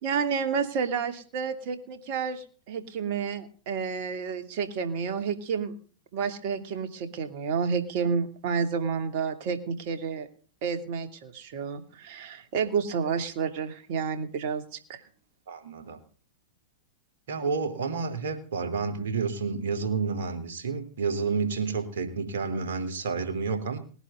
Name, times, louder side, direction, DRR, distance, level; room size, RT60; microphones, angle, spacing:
voice 1, 0.0-5.7 6.1-10.3 10.6-15.0, right 6 dB, 55° right, 8 dB, 2.8 m, -30 dB
voice 2, 15.5-16.0 17.3-23.8, right 5 dB, 70° right, 6 dB, 3.6 m, -30 dB
20.0 x 11.0 x 3.9 m, 0.40 s
hypercardioid pair, 105°, 0 cm